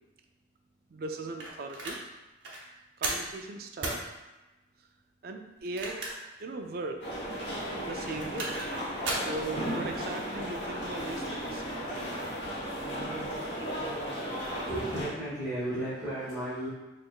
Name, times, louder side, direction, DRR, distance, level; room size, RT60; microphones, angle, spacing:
voice 1, 0.9-2.0 3.0-4.0 5.2-6.0 6.4-7.1 7.8-8.6 9.2-11.6, right 2 dB, 55° right, 4 dB, 0.4 m, -38 dB
sound 1, 1.4-2.0 2.4-2.6 3.0-3.3 3.8-4.0 5.6-6.3 6.7-6.8 8.0-8.7 9.0-9.3, right 2 dB, 75° right, 0.8 m, -34 dB
sound 2, 7.0-15.1, equal, 75° left, 1.2 m, -35 dB
voice 2, 14.7-16.7, right 1 dB, ahead, -15 dB, 1.4 m, -34 dB
4.5 x 3.3 x 2.3 m, 1.1 s
head